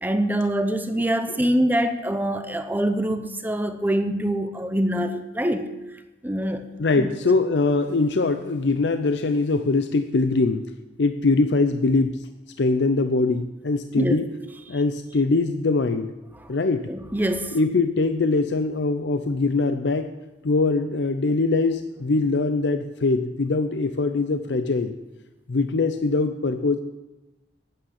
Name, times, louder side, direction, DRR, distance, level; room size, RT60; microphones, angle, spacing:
voice 1, 0.0-5.7 6.2-6.7 6.9-7.1 14.0-14.2 16.4-16.5 16.9-17.6, right 1 dB, 10° right, 8 dB, 0.7 m, -24 dB
voice 2, 6.8-10.7 11.0-12.2 12.6-14.3 14.7-16.1 16.5-16.9 17.5-20.1 20.4-24.9 25.5-26.8, left 3 dB, 75° left, 9 dB, 0.6 m, -22 dB
11.5 x 8.9 x 6.5 m, 1.0 s
head